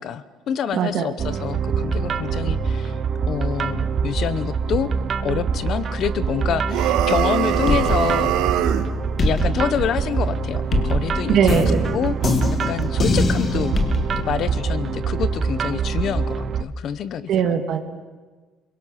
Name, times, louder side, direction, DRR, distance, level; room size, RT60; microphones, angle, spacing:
voice 1, 0.0-3.0 3.2-4.9 5.2-8.4 9.2-12.4 12.7-13.8 14.2-17.3, left 8 dB, 45° left, 15 dB, 0.9 m, -27 dB
voice 2, 0.7-1.1 11.3-11.9 17.3-17.8, right 7 dB, 50° right, 5 dB, 1.8 m, -20 dB
sound 1, 1.2-16.6, right 5 dB, 30° right, 0.9 m, -24 dB
sound 2, 6.7-8.9, right 11 dB, 85° right, 1.6 m, -22 dB
sound 3, 7.4-8.8 9.2-14.3, left 3 dB, 25° left, 2.0 m, -24 dB
30.0 x 22.5 x 6.5 m, 1.3 s
cardioid pair, 175°, 0 cm